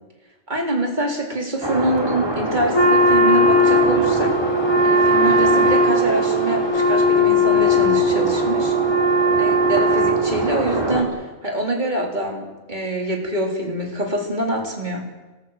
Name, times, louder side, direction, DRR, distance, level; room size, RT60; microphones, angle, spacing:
voice 1, 0.5-4.4 4.8-8.7 9.4-15.1, right 1 dB, 35° right, 1 dB, 4.1 m, -25 dB
sound 1, 1.6-11.0, right 1 dB, 20° right, 3.0 m, -25 dB
Wind instrument woodwind instrument, 2.7-10.7, equal, 20° left, 3.1 m, -18 dB
26.0 x 19.0 x 7.5 m, 1.2 s
omnidirectional pair, 1.3 m